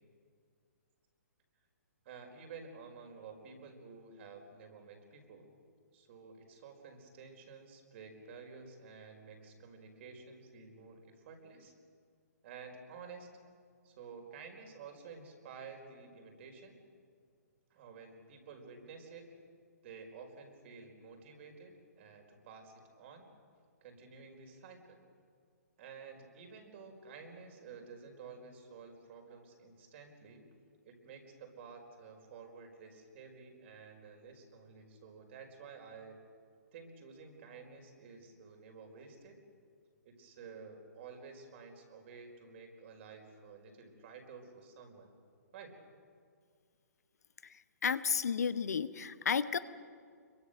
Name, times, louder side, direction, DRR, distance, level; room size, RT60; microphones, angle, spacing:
voice 1, 2.0-5.5 5.9-11.7 12.4-13.4 13.8-16.8 17.7-19.3 19.8-23.3 23.8-25.0 25.8-30.5 30.8-36.2 36.7-39.4 40.0-45.1 45.5-45.8, right 5 dB, 45° right, 4 dB, 4.8 m, -52 dB
voice 2, 47.8-49.6, left 6 dB, 70° left, 13 dB, 1.1 m, -32 dB
26.5 x 23.0 x 6.6 m, 2.1 s
figure-of-eight pair, 130°, 9 cm